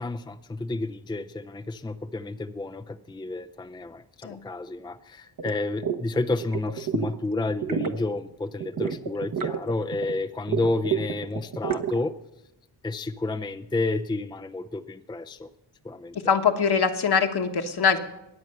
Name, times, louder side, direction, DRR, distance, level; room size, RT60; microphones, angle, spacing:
voice 1, 0.0-12.1 12.8-15.5 15.8-16.2, left 2 dB, 10° left, 10 dB, 0.5 m, -30 dB
sound 1, 5.4-5.5 5.8-6.0 6.3-7.2 7.5-8.0 8.6-10.2 10.5-12.0, right 7 dB, 50° right, 1.1 m, -29 dB
voice 2, 16.1-18.0, left 6 dB, 60° left, 6 dB, 1.4 m, -23 dB
22.0 x 8.9 x 6.7 m, 0.92 s
wide cardioid pair, 95°, 44 cm